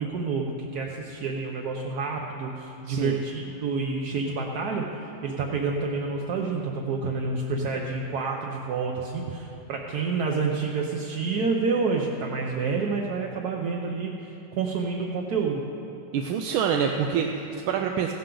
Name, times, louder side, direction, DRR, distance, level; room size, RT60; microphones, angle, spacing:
voice 1, 0.0-15.6, right 4 dB, 60° right, 0 dB, 1.1 m, -28 dB
voice 2, 2.9-3.2 16.1-18.1, right 7 dB, 90° right, 3 dB, 1.4 m, -26 dB
15.5 x 11.5 x 3.8 m, 2.9 s
omnidirectional pair, 2.2 m